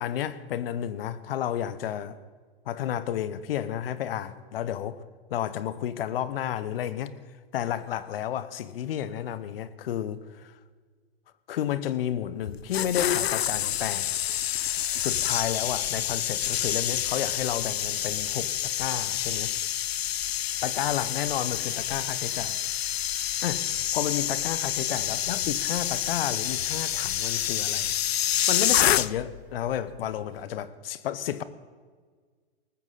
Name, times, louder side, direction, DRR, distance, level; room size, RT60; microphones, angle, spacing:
voice 1, 0.0-2.2 2.6-5.0 5.3-7.1 7.5-10.5 11.5-14.1 15.0-19.5 20.6-22.6 23.4-27.9 28.5-31.4, left 10 dB, 70° left, 1.1 m, -31 dB
sound 1, 12.5-29.4 29.7-30.0, left 11 dB, 85° left, 0.5 m, -28 dB
19.0 x 15.0 x 4.1 m
hypercardioid pair, 110°, 30 cm